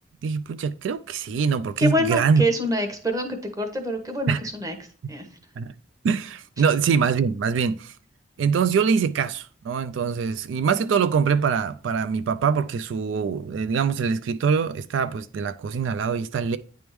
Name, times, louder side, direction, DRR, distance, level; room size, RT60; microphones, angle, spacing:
voice 1, 0.2-2.4 4.3-4.4 5.6-5.7 6.0-7.9 8.4-16.6, right 6 dB, 90° right, 0.3 m, -23 dB
voice 2, 1.8-4.7 5.1-5.2, equal, 20° right, 1.0 m, -26 dB
9.4 x 3.5 x 3.0 m
head